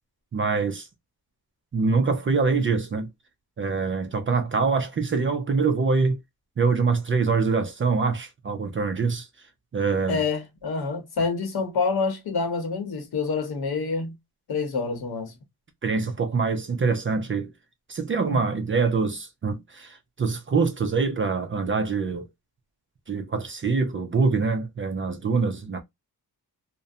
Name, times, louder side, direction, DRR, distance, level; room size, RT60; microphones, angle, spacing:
voice 1, 0.3-0.9 1.7-3.1 3.6-6.2 6.6-9.3 9.7-10.2 15.8-17.5 17.9-22.3 23.1-25.8, right 4 dB, 35° right, 0.4 m, -24 dB
voice 2, 10.1-14.1 14.5-15.3 18.3-18.4, left 4 dB, 70° left, 0.9 m, -27 dB
2.4 x 2.1 x 2.5 m
wide cardioid pair, 160°, 39 cm